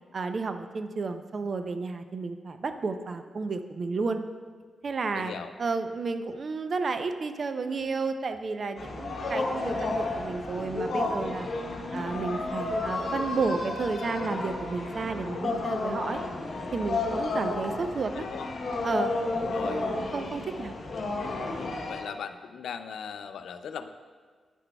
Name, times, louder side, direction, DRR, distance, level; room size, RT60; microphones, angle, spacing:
voice 1, 0.1-4.2 4.8-5.3 5.6-11.5 11.9-16.2 16.7-18.2 18.8-19.1 19.6-20.7, right 4 dB, 55° right, 8 dB, 0.5 m, -32 dB
voice 2, 5.1-5.5 18.2-18.5 19.5-19.8 21.6-23.9, left 7 dB, 85° left, 10 dB, 0.3 m, -38 dB
sound 1, 8.8-22.0, left 2 dB, 65° left, 0.9 m, -32 dB
9.8 x 5.9 x 2.2 m, 1.6 s
cardioid pair, 65°, 0 cm